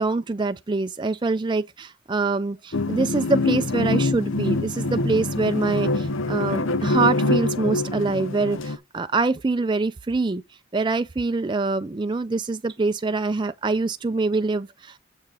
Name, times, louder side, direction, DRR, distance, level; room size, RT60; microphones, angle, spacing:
voice 1, 0.0-10.4 10.7-15.0, right 3 dB, 25° right, 0.4 m, -25 dB
sound 1, 2.7-8.8, left 2 dB, 80° left, 0.8 m, -25 dB
7.1 x 6.5 x 3.7 m
head